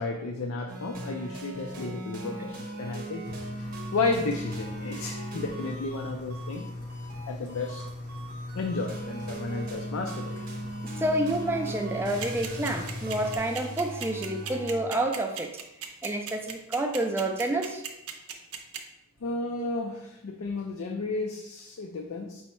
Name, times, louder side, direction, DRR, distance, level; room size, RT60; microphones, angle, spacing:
voice 1, 0.0-6.6 7.3-7.8 8.5-10.4 19.2-22.4, left 3 dB, 65° left, 2 dB, 0.4 m, -33 dB
sound 1, 0.7-14.8, right 1 dB, 40° right, 0.7 m, -40 dB
Engine, 3.2-13.4, left 2 dB, 85° left, 1.0 m, -39 dB
voice 2, 10.8-15.5 16.0-17.8, right 1 dB, 10° right, 3 dB, 0.3 m, -29 dB
sound 2, 12.2-18.8, right 9 dB, 80° right, 0.6 m, -36 dB
5.5 x 2.1 x 4.3 m, 0.87 s
head